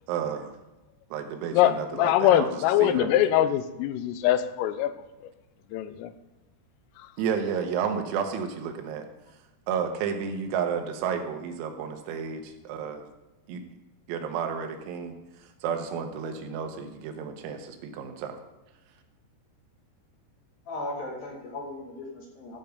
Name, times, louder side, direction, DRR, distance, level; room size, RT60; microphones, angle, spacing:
voice 1, 0.1-0.6 1.1-2.5 2.8-3.5 7.2-9.1 9.7-13.1 13.5-13.6 14.1-15.2 15.6-18.4, right 7 dB, 90° right, 5 dB, 3.8 m, -31 dB
voice 2, 1.5-5.0 5.7-6.1, left 12 dB, 85° left, 12 dB, 3.2 m, -23 dB
voice 3, 20.7-22.6, left 2 dB, 65° left, -1 dB, 2.5 m, -37 dB
14.0 x 6.9 x 5.2 m, 0.98 s
omnidirectional pair, 5.9 m